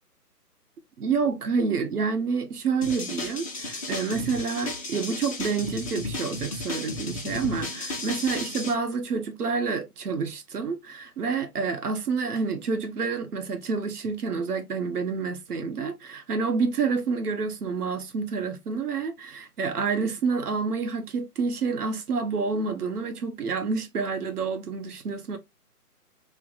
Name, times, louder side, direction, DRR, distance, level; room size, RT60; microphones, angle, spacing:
voice 1, 1.0-25.4, right 5 dB, 70° right, 1.2 m, -28 dB
sound 1, 2.8-8.7, left 2 dB, 20° left, 0.8 m, -34 dB
3.3 x 2.4 x 4.0 m
hypercardioid pair, 165°, 47 cm